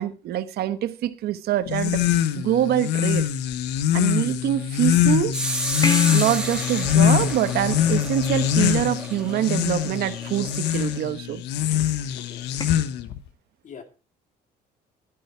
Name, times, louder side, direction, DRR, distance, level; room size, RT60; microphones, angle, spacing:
voice 1, 0.0-2.0 2.3-3.3 3.9-5.4 6.1-11.4, right 12 dB, 70° right, 1.2 m, -25 dB
sound 1, 1.7-13.2, left 10 dB, 90° left, 1.2 m, -23 dB
sound 2, 5.3-11.0, right 2 dB, 5° right, 2.6 m, -32 dB
sound 3, 5.8-8.5 12.6-12.7, left 3 dB, 25° left, 2.1 m, -32 dB
voice 2, 12.1-12.5 13.6-13.8, left 7 dB, 50° left, 2.4 m, -43 dB
11.5 x 11.0 x 4.6 m
cardioid pair, 110°, 17 cm